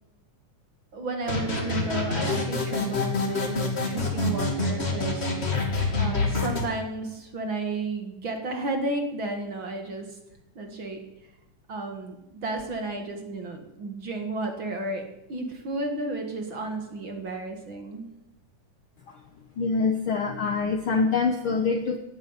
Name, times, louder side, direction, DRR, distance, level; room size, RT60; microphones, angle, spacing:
voice 1, 0.9-5.3 6.0-10.2 10.6-11.0 11.7-15.0 15.3-18.1, right 2 dB, 45° right, 4 dB, 2.3 m, -33 dB
sound 1, 1.2-6.6, left 2 dB, 20° left, 2.5 m, -27 dB
voice 2, 19.6-22.0, left 4 dB, 60° left, 5 dB, 1.4 m, -25 dB
17.5 x 9.4 x 8.2 m, 0.92 s
omnidirectional pair, 3.6 m